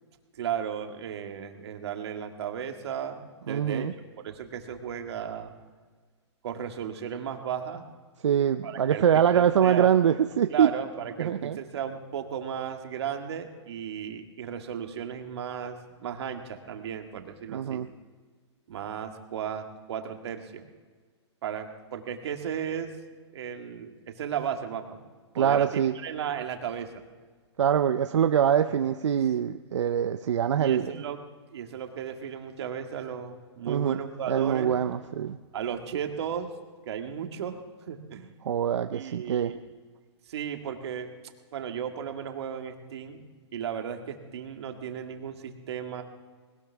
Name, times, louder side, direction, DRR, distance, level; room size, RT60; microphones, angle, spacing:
voice 1, 0.3-3.9 4.2-5.5 6.4-7.8 8.6-9.9 10.5-17.8 18.7-20.7 21.4-22.9 23.3-25.0 25.4-25.7 25.9-27.0 30.6-31.2 31.5-34.8 35.5-36.5 36.9-37.6 37.9-38.3 38.9-39.6 40.3-41.1 41.5-43.2 43.5-46.0, right 8 dB, 65° right, 4 dB, 1.9 m, -35 dB
voice 2, 3.5-3.9 8.2-10.7 11.2-11.6 17.5-17.9 25.3-26.0 27.6-30.9 33.7-34.0 34.3-35.4 38.4-39.5, right 9 dB, 85° right, 9 dB, 0.6 m, -24 dB
20.5 x 18.5 x 3.5 m, 1.5 s
hypercardioid pair, 150°, 15 cm